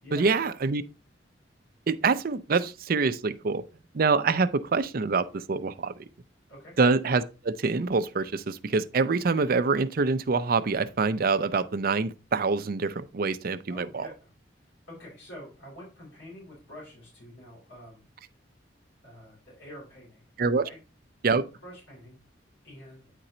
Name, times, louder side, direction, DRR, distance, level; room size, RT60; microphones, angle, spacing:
voice 1, 0.1-0.8 1.9-3.6 3.9-6.1 6.8-14.1 20.4-20.6 21.2-21.4, right 4 dB, 50° right, 0.5 m, -25 dB
voice 2, 13.7-14.3 14.6-18.1 19.0-20.3 20.5-20.8 21.5-22.2 22.6-23.1, left 1 dB, 75° left, 4.3 m, -47 dB
9.0 x 4.3 x 3.8 m
head